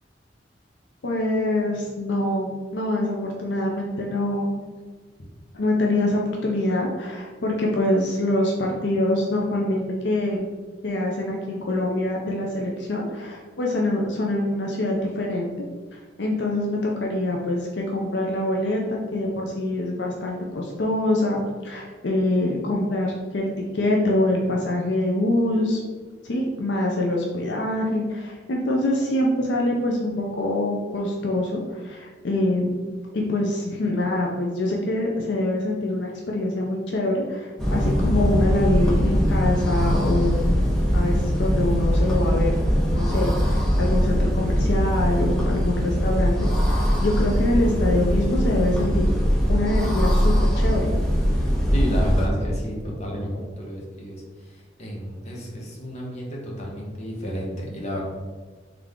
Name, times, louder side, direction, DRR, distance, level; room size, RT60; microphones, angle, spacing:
voice 1, 1.0-4.6 5.5-10.5 10.8-15.5 16.2-25.8 26.2-32.9 33.1-40.4 40.9-42.6 42.9-49.1 49.5-51.0, left 1 dB, 70° left, -1 dB, 0.5 m, -25 dB
sound 1, 37.6-52.3, equal, 5° left, 0.7 m, -21 dB
voice 2, 51.7-58.0, equal, 40° left, -2 dB, 0.9 m, -31 dB
3.6 x 3.3 x 3.6 m, 1.4 s
head